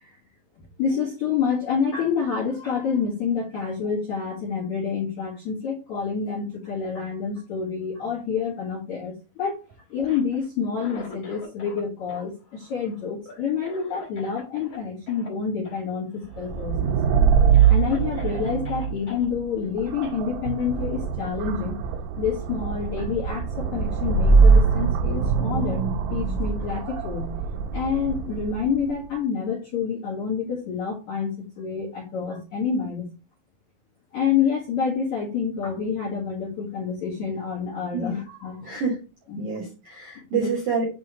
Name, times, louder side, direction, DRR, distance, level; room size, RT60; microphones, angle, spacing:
voice 1, 0.8-9.6 9.9-17.0 17.7-21.8 22.2-25.8 26.1-27.3 27.7-33.1 34.1-38.8 39.3-39.4 40.2-40.5, left 6 dB, 75° left, -2 dB, 1.7 m, -28 dB
Cough, 9.9-11.8 12.1-14.8 15.1-15.3 15.6-15.8 16.1-16.6 17.1-17.2 17.5-19.2 20.0-20.2, left 3 dB, 40° left, 1.3 m, -44 dB
sound 1, 16.3-28.9, right 6 dB, 85° right, 4.1 m, -22 dB
voice 2, 38.6-39.0 39.4-40.9, right 5 dB, 65° right, -2 dB, 2.0 m, -27 dB
8.8 x 3.0 x 3.7 m, 0.31 s
omnidirectional pair, 6.0 m